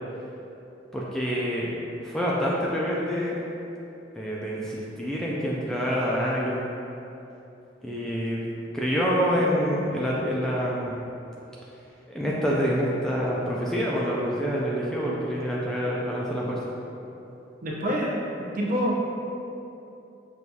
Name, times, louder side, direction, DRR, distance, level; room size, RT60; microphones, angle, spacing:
voice 1, 0.9-1.8 2.0-3.4 4.1-6.7 7.8-8.4 8.7-11.0 12.1-16.6, equal, 5° left, -6 dB, 0.3 m, -26 dB
voice 2, 17.6-19.0, equal, 45° right, -4 dB, 0.7 m, -27 dB
6.1 x 2.3 x 2.7 m, 2.9 s
head